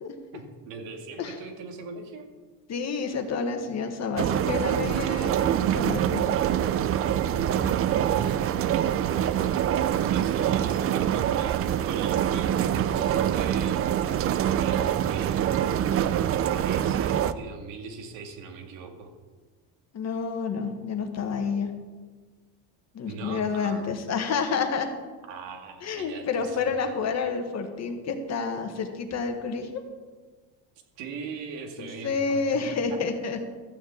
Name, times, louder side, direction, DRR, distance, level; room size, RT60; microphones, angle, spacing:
voice 1, 0.3-2.3 7.8-9.1 9.8-14.1 14.5-15.7 16.5-19.1 23.1-23.9 25.3-26.9 31.0-32.6 32.9-33.0, right 5 dB, 90° right, 3 dB, 2.5 m, -41 dB
voice 2, 2.7-6.3 19.9-21.7 22.9-24.9 25.8-29.8 31.8-33.4, left 5 dB, 35° left, 6 dB, 1.5 m, -29 dB
sound 1, 4.2-17.3, right 10 dB, 35° right, 0.4 m, -25 dB
13.5 x 6.7 x 8.3 m, 1.4 s
cardioid pair, 155°, 43 cm